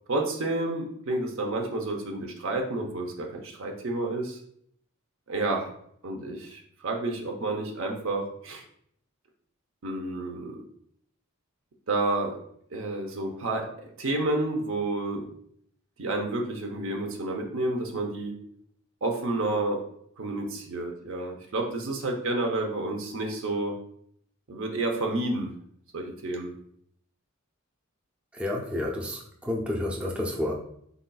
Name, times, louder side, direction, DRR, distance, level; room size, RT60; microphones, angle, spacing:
voice 1, 0.1-4.4 5.3-5.7 6.0-8.6 9.8-10.6 11.9-12.4 12.7-15.2 16.0-18.3 19.0-19.8 20.2-23.8 24.5-25.5 25.9-26.5, right 2 dB, 65° right, 2 dB, 0.7 m, -30 dB
voice 2, 28.3-30.5, left 1 dB, 5° right, -2 dB, 0.5 m, -30 dB
4.0 x 4.0 x 2.2 m, 0.67 s
head